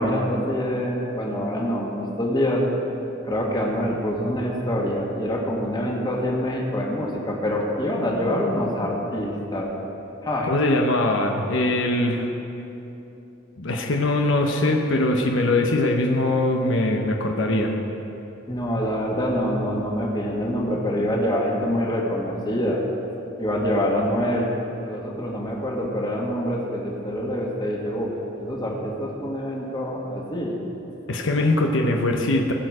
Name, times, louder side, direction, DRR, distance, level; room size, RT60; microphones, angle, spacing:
voice 1, 0.0-2.6 3.2-9.7 10.2-10.5 18.5-22.8 23.4-24.5 24.8-30.6, equal, 20° left, -2 dB, 1.7 m, -25 dB
voice 2, 10.4-12.3 13.6-17.7 31.1-32.5, left 2 dB, 75° left, 2 dB, 0.9 m, -22 dB
20.0 x 6.7 x 4.9 m, 3.0 s
head